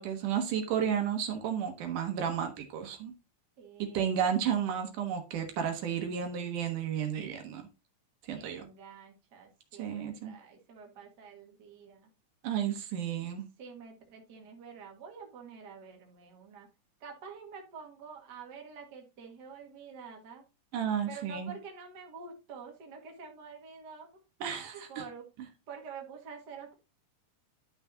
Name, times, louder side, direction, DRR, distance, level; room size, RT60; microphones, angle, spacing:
voice 1, 0.0-3.1 3.9-7.6 8.2-8.6 9.8-10.3 12.4-13.5 20.7-21.5 24.4-25.0, right 8 dB, 75° right, 2.8 m, -32 dB
voice 2, 3.6-4.3 8.3-12.1 13.6-16.7 17.0-20.4 21.1-24.1 24.9-25.3 25.7-26.7, right 6 dB, 35° right, 2.0 m, -48 dB
11.5 x 5.9 x 2.8 m
omnidirectional pair, 3.8 m